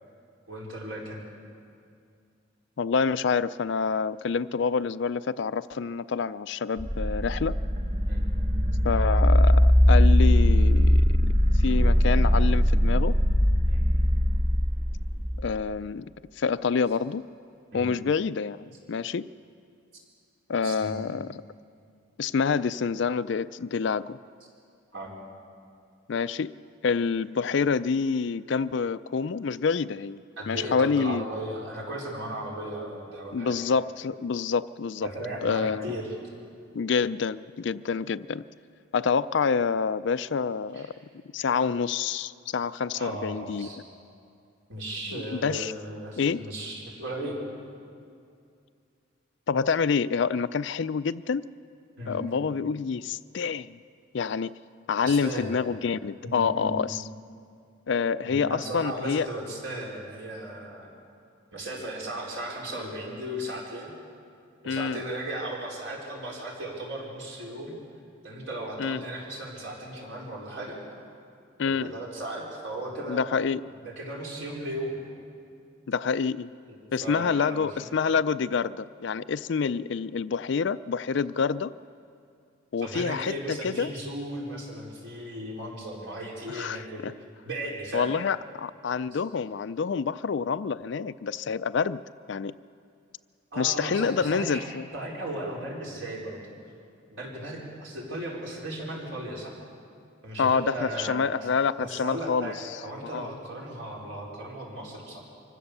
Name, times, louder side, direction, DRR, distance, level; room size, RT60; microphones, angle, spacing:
voice 1, 0.5-1.2 8.1-8.2 13.7-13.8 17.7-17.9 20.6-20.9 24.9-25.1 30.4-33.7 35.0-36.1 40.7-40.9 42.9-43.8 44.7-47.4 52.0-52.2 55.0-55.5 56.2-56.8 58.2-60.9 61.5-63.9 64.6-67.8 68.2-70.8 71.6-73.2 73.8-75.0 76.6-78.0 82.8-87.0 87.4-88.2 89.1-89.2 93.5-94.6 94.9-96.5 97.1-99.5 100.2-101.2 101.8-105.2, right 1 dB, 60° right, -3 dB, 4.5 m, -36 dB
voice 2, 2.8-7.6 8.8-11.3 11.6-13.2 15.4-16.1 16.4-17.2 17.7-19.3 20.5-21.3 22.2-24.2 26.1-26.5 26.8-30.2 30.5-31.3 33.3-35.1 35.4-35.9 36.7-38.4 38.9-40.9 41.3-43.7 45.1-45.7 46.2-46.4 49.5-51.5 52.1-53.8 54.1-54.5 54.9-57.0 57.9-59.3 64.7-65.0 68.8-69.0 71.6-71.9 73.1-73.6 75.9-76.5 76.9-81.7 82.7-83.9 86.5-87.1 87.9-92.0 92.3-92.5 93.6-94.8 100.4-102.5 103.1-103.3, left 5 dB, 55° left, 15 dB, 0.4 m, -27 dB
sound 1, 6.8-15.6, equal, 40° right, 1.6 m, -21 dB
24.5 x 16.0 x 6.8 m, 2.4 s
head